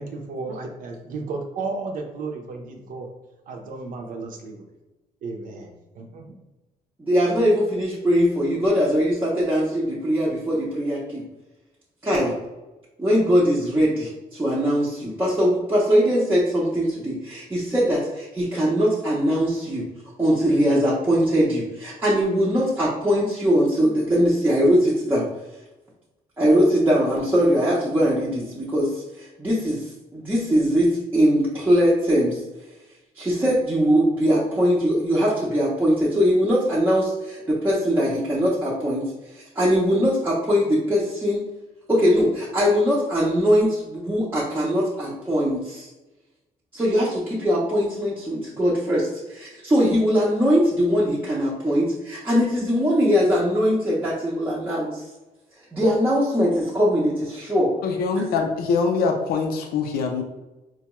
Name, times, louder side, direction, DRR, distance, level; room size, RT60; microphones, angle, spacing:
voice 1, 0.0-3.1 3.5-4.7 5.2-6.2, right 3 dB, 65° right, 3 dB, 0.6 m, -33 dB
voice 2, 7.0-11.2 12.0-12.3 13.0-19.8 20.2-25.2 26.4-32.4 33.2-41.4 41.9-45.9 46.7-55.0 55.7-57.7, equal, 15° right, -7 dB, 0.6 m, -21 dB
voice 3, 57.8-60.2, left 4 dB, 85° left, 4 dB, 0.5 m, -23 dB
4.4 x 2.3 x 3.0 m, 1.1 s
cardioid pair, 165°, 15 cm